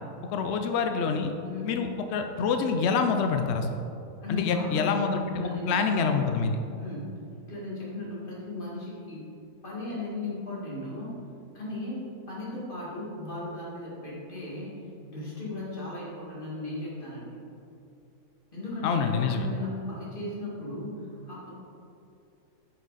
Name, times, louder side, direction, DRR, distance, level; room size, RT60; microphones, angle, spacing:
voice 1, 0.3-1.3 1.6-3.7 4.3-6.6 18.8-19.5, left 5 dB, 85° left, 6 dB, 0.6 m, -26 dB
voice 2, 1.4-1.8 4.2-6.0 6.8-7.2 7.5-9.2 9.6-11.2 11.5-14.7 15.1-17.4 18.5-21.5, left 2 dB, 30° left, -6 dB, 2.3 m, -36 dB
9.3 x 5.7 x 4.1 m, 2.7 s
omnidirectional pair, 1.8 m